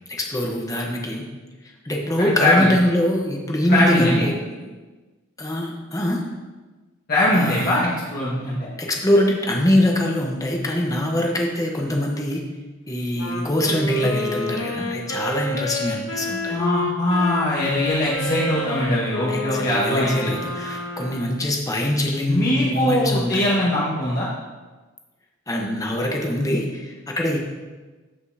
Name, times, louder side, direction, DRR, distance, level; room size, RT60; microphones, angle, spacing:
voice 1, 0.2-1.2 1.8-4.7 5.4-6.3 7.3-7.8 8.8-12.4 12.9-16.6 19.3-23.6 25.5-27.4, left 1 dB, 15° left, 0 dB, 1.0 m, -23 dB
voice 2, 2.2-2.7 3.7-4.3 7.1-8.7 16.5-20.4 22.3-24.3, left 1 dB, 45° left, -8 dB, 1.6 m, -21 dB
Wind instrument woodwind instrument, 13.2-21.4, left 2 dB, 75° left, 1.0 m, -29 dB
14.5 x 5.4 x 2.8 m, 1.3 s
head